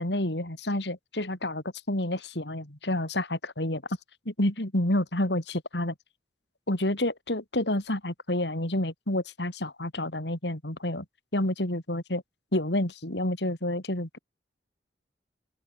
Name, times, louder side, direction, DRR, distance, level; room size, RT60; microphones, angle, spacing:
voice 1, 0.0-3.8 4.3-5.9 6.7-11.0 11.3-12.2 12.5-14.2, left 1 dB, 75° left, 4.3 m, -29 dB
open air
head